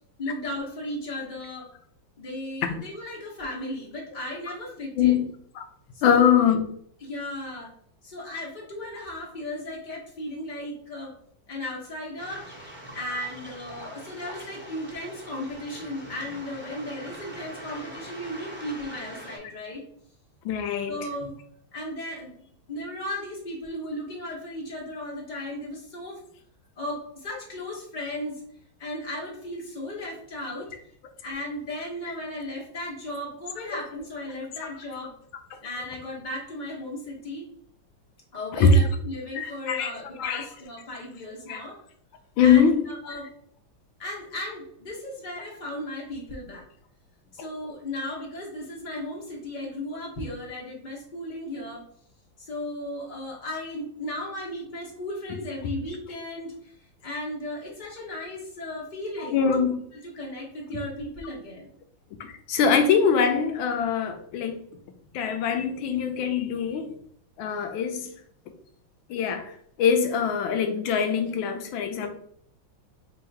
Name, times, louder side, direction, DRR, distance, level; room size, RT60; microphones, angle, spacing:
voice 1, 0.2-1.7 2.2-5.2 5.9-6.3 7.0-7.7 8.0-11.1 11.5-12.5 12.9-19.8 20.9-21.4 21.7-26.2 26.8-28.4 28.8-30.7 31.2-35.1 35.6-37.5 38.3-41.8 42.4-43.3 44.0-46.7 47.3-51.9 52.4-56.7 57.0-59.5 59.9-61.7, left 1 dB, 65° left, 0.4 m, -35 dB
voice 2, 5.0-5.3 5.6-5.7 6.0-6.7 20.4-20.9 38.5-38.7 39.3-39.9 40.2-40.4 41.5-41.6 42.4-42.8 59.2-59.8 62.2-64.6 65.1-66.9 67.4-68.1 69.1-69.5 69.8-72.1, left 7 dB, 85° left, 1.4 m, -22 dB
Waves surf, 12.2-19.4, right 1 dB, 10° right, 0.5 m, -43 dB
3.7 x 2.4 x 4.4 m
omnidirectional pair, 2.1 m